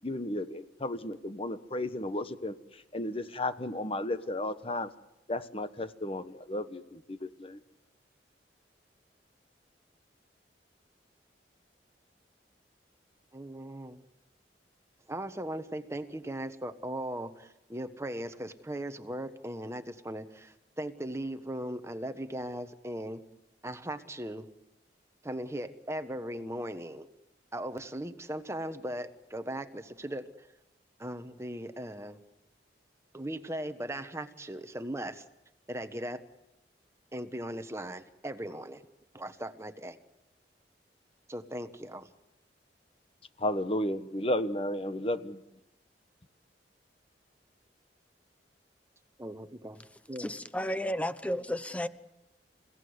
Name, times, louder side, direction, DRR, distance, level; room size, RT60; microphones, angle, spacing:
voice 1, 0.0-4.9 5.3-7.6 43.4-45.4, left 1 dB, 30° left, 1.2 m, -33 dB
voice 2, 13.3-14.0 15.1-23.2 23.6-24.5 25.2-27.1 27.5-30.5 31.0-32.2 33.1-35.2 35.7-36.2 37.1-38.8 39.1-40.0 41.3-42.1 49.2-50.3, right 1 dB, 15° right, 1.2 m, -38 dB
voice 3, 50.2-51.9, equal, 10° left, 0.9 m, -32 dB
28.5 x 17.0 x 9.6 m
head